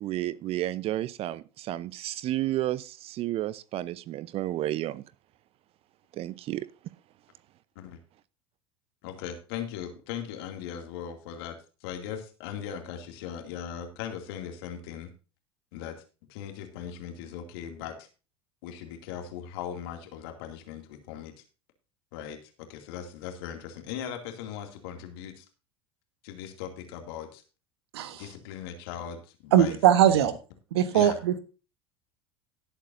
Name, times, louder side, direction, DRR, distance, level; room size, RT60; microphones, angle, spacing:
voice 1, 0.0-5.0 6.1-6.7, right 14 dB, 45° right, 19 dB, 0.7 m, -31 dB
voice 2, 9.0-15.1 15.7-16.0 16.3-18.1 18.6-21.3 22.1-25.4 26.2-27.4 28.0-29.8 30.9-31.2, left 9 dB, 65° left, 5 dB, 2.5 m, -39 dB
voice 3, 29.5-30.3 30.7-31.4, right 10 dB, 70° right, 12 dB, 1.4 m, -21 dB
18.0 x 8.3 x 2.7 m, 0.33 s
figure-of-eight pair, 75°, 14 cm